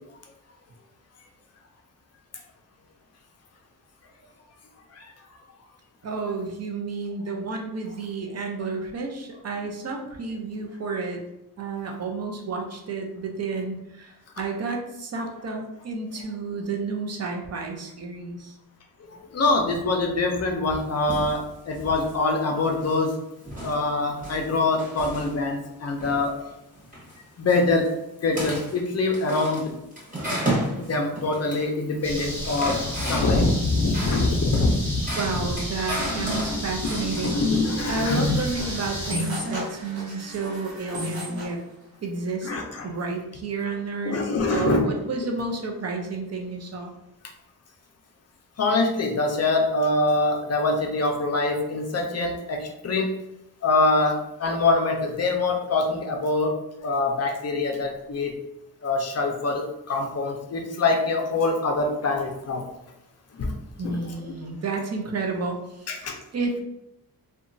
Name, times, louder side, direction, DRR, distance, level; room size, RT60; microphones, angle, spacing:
voice 1, 6.0-11.2 11.6-14.1 14.4-18.5 35.1-37.4 37.9-41.6 42.0-42.5 42.8-44.2 44.5-46.9 63.8-65.6 66.3-66.6, right 4 dB, 45° right, 2 dB, 0.5 m, -31 dB
voice 2, 19.1-23.1 23.6-26.4 27.4-27.9 28.2-29.7 30.8-35.1 36.0-36.6 36.9-38.3 42.4-42.9 44.0-44.9 48.6-53.1 53.6-56.5 56.8-58.3 58.8-62.6 63.4-63.5 63.8-64.2 65.9-66.1, left 3 dB, 45° left, 2 dB, 0.5 m, -24 dB
sound 1, 20.7-21.4 21.7-22.2 22.6-23.0 23.4-25.6 26.0-26.3 26.7-27.2 27.5-27.9 28.3-28.8 29.1-31.7 31.9-33.5 33.9-37.6, right 1 dB, 20° right, 1.0 m, -33 dB
sound 2, 32.0-39.1, equal, 5° left, 0.7 m, -33 dB
sound 3, 37.8-41.6, equal, 75° right, 0.9 m, -34 dB
2.9 x 2.2 x 2.5 m, 0.86 s
wide cardioid pair, 140°, 37 cm